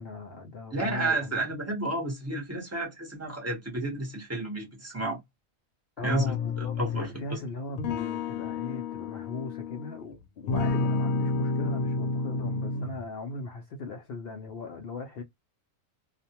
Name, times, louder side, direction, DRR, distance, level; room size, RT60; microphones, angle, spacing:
voice 1, 0.0-1.4 6.0-15.2, left 3 dB, 65° left, 0.6 m, -38 dB
voice 2, 0.7-5.2 6.0-7.4, right 2 dB, 15° right, 0.6 m, -31 dB
sound 1, 6.1-7.2 7.8-10.0 10.5-13.1, left 3 dB, 80° left, 1.0 m, -30 dB
2.4 x 2.1 x 2.7 m
omnidirectional pair, 1.4 m